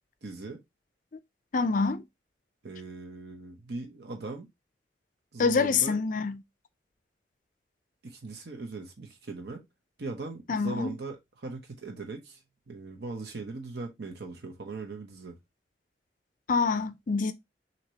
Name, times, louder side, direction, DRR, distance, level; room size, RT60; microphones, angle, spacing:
voice 1, 0.2-0.6 2.6-4.5 5.3-6.0 8.0-9.6 10.0-15.4, right 3 dB, 65° right, 0.8 m, -39 dB
voice 2, 1.5-2.0 5.4-6.4 10.5-10.9 16.5-17.3, left 4 dB, 50° left, 0.5 m, -26 dB
6.2 x 2.9 x 2.8 m
head